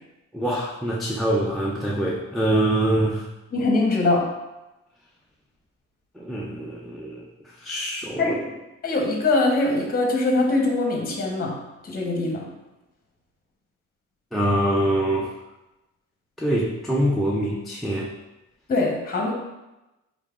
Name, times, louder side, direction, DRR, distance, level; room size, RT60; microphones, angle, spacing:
voice 1, 0.3-3.2 6.2-7.2 7.6-8.4 14.3-15.3 16.4-18.1, right 1 dB, ahead, -5 dB, 0.4 m, -24 dB
voice 2, 3.5-4.3 8.2-8.4 8.8-11.6 11.8-12.5 18.7-19.3, left 2 dB, 30° left, 0 dB, 0.8 m, -22 dB
3.8 x 3.2 x 2.4 m, 0.98 s
cardioid pair, 90°, 30 cm